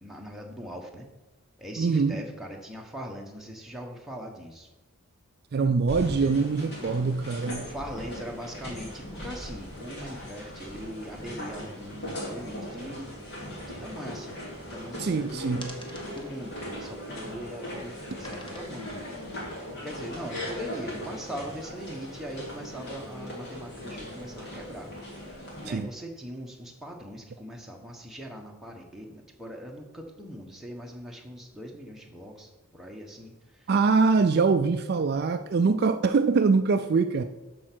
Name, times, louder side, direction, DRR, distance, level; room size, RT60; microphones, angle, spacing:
voice 1, 0.0-1.1 1.6-4.7 7.4-13.2 13.6-14.4 14.7-17.9 18.2-19.1 19.7-25.3 25.6-33.7, equal, ahead, 1.1 m, -41 dB
voice 2, 1.8-2.2 5.5-7.7 15.0-15.8 25.7-25.9 33.7-37.2, right 4 dB, 45° right, 0.3 m, -23 dB
sound 1, 5.9-25.8, equal, 50° left, 2.9 m, -39 dB
sound 2, 15.6-17.5 18.2-18.6, left 1 dB, 20° left, 1.1 m, -48 dB
12.5 x 4.6 x 6.0 m
head